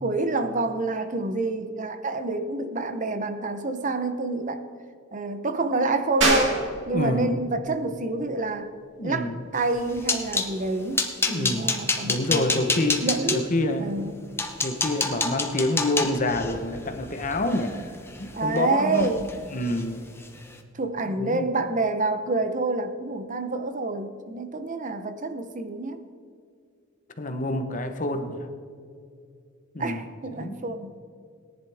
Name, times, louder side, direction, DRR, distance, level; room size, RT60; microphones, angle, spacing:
voice 1, 0.0-4.6 5.1-8.7 9.0-11.0 11.3-12.6 13.0-13.5 13.8-14.1 18.3-19.2 20.7-26.0 29.8-31.0, right 2 dB, 40° right, 8 dB, 0.8 m, -28 dB
sound 1, 6.2-16.4, right 2 dB, 65° right, 3.1 m, -33 dB
voice 2, 6.9-7.4 9.0-9.4 11.3-11.7 12.0-13.0 13.3-13.9 14.6-17.8 18.2-19.1 19.5-20.1 21.2-21.4 27.2-28.5 29.7-30.0 30.3-30.6, left 1 dB, 40° left, 7 dB, 1.0 m, -27 dB
sound 2, 9.6-10.5 10.9-13.4 14.0-14.1 14.4-18.6 18.9-19.3 19.6-19.8 20.2-20.4, left 3 dB, 10° left, 1.0 m, -28 dB
18.5 x 10.5 x 3.5 m, 2.3 s
head